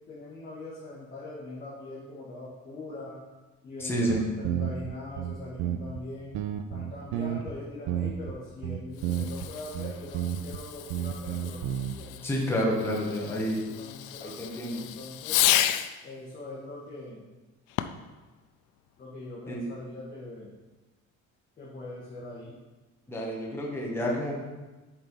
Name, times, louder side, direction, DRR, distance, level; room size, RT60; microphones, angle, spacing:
voice 1, 0.1-3.2 3.6-6.3 6.7-12.2 13.1-15.4 16.0-17.3 19.0-20.5 21.6-22.6, left 2 dB, 30° left, -7 dB, 1.5 m, -42 dB
voice 2, 3.8-4.2 12.2-13.6 14.2-14.9 19.5-19.6 23.1-24.4, equal, 10° left, -2 dB, 1.1 m, -29 dB
sound 1, 3.8-3.9 4.1-6.0 6.3-7.5 7.9-8.3 8.6-9.5 9.7-10.6 10.9-12.0, right 10 dB, 65° right, 0.6 m, -31 dB
Fireworks, 8.9-16.0 17.7-18.2, left 13 dB, 85° left, 0.5 m, -32 dB
7.7 x 4.3 x 5.3 m, 1.2 s
cardioid pair, 175°, 30 cm